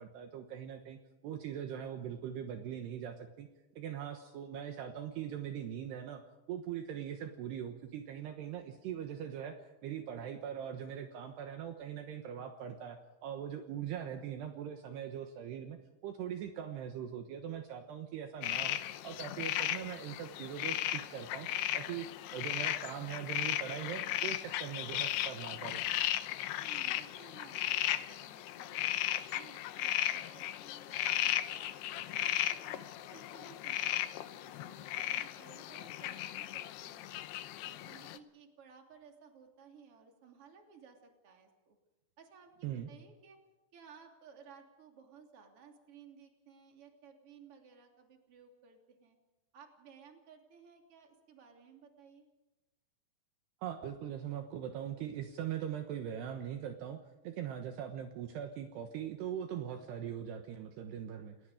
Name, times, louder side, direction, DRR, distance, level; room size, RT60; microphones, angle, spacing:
voice 1, 0.0-3.5 3.8-6.2 6.5-21.5 21.7-25.8 42.6-42.9 53.6-61.4, right 9 dB, 70° right, 5 dB, 3.1 m, -41 dB
sound 1, 18.4-38.2, left 13 dB, 75° left, 2.7 m, -36 dB
voice 2, 26.6-32.2 32.6-37.2 37.6-41.8 42.2-43.4 43.7-49.2 49.5-52.3, right 6 dB, 35° right, 3 dB, 3.3 m, -58 dB
29.5 x 19.0 x 5.1 m, 1.1 s
omnidirectional pair, 5.3 m